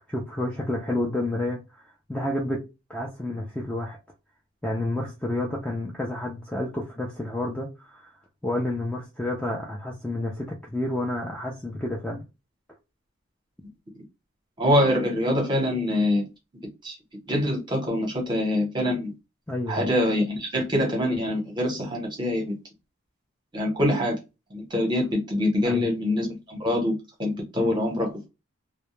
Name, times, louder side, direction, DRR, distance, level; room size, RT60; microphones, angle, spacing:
voice 1, 0.1-2.6 2.9-4.0 4.6-8.1 8.4-12.2 19.5-19.8 25.6-25.9 27.6-27.7, left 1 dB, 5° left, 0.3 m, -30 dB
voice 2, 14.6-16.3 16.8-17.0 17.3-19.1 19.7-22.5 23.5-24.2 24.5-28.1, left 1 dB, 20° right, 0.8 m, -24 dB
2.2 x 2.0 x 3.0 m
head